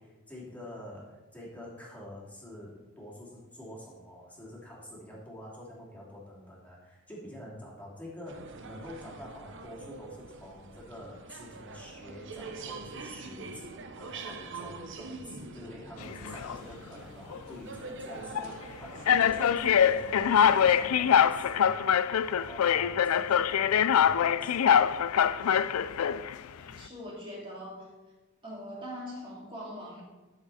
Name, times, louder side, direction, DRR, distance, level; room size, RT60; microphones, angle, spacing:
voice 1, 0.0-24.8, left 1 dB, 5° left, -6 dB, 3.0 m, -47 dB
sound 1, 8.3-21.2, right 3 dB, 60° right, 0.9 m, -44 dB
sound 2, 16.0-16.6 17.3-17.5 18.3-18.5 19.1-26.3, left 8 dB, 80° left, 0.4 m, -24 dB
voice 2, 26.6-27.9 28.4-30.0, equal, 25° right, -3 dB, 2.4 m, -42 dB
12.5 x 7.2 x 4.3 m, 1.1 s
head